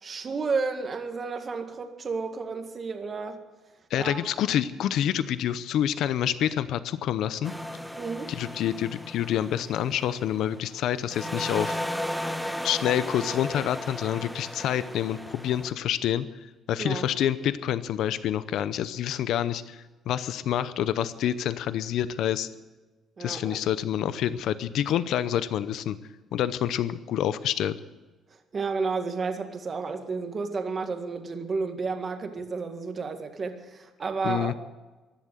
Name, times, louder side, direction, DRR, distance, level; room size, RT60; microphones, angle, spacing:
voice 1, 0.0-3.4 4.0-4.3 8.0-8.3 16.8-17.1 23.2-23.6 28.5-34.5, right 4 dB, 35° right, 6 dB, 1.9 m, -31 dB
voice 2, 3.9-7.5 8.3-11.8 12.6-16.3 16.7-22.5 23.2-26.0 26.3-27.8 34.2-34.5, left 10 dB, 75° left, 14 dB, 0.7 m, -27 dB
sound 1, 7.4-10.8 11.1-15.7, equal, ahead, 1.0 m, -35 dB
16.0 x 11.0 x 7.9 m, 1.2 s
cardioid pair, 110°, 0 cm